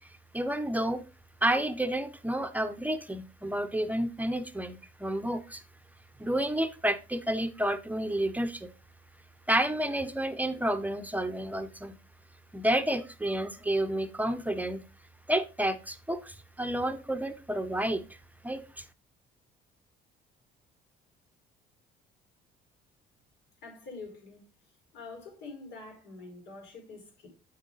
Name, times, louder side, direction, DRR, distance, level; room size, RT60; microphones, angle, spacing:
voice 1, 0.3-1.0 1.4-5.6 6.2-8.7 9.5-11.9 12.5-14.8 15.3-18.0 18.4-18.8, right 1 dB, 10° right, 0.7 m, -30 dB
voice 2, 23.6-24.4 24.9-27.3, left 3 dB, 85° left, 4.8 m, -45 dB
8.2 x 6.6 x 3.9 m
cardioid pair, 110°, 17 cm